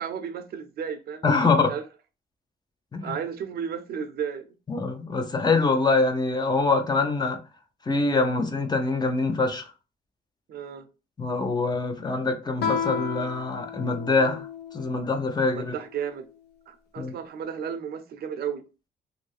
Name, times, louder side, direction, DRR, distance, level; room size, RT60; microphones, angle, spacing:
voice 1, 0.0-1.8 3.0-4.6 10.5-10.9 15.6-16.3 16.7-18.6, right 7 dB, 70° right, 0.6 m, -33 dB
voice 2, 1.2-1.7 2.9-3.1 4.7-7.4 7.9-9.7 11.2-14.5 14.7-15.7 17.0-17.1, left 3 dB, 25° left, 0.7 m, -24 dB
Guitar, 12.6-15.0, left 7 dB, 75° left, 0.5 m, -32 dB
2.7 x 2.5 x 3.1 m
cardioid pair, 100°, 17 cm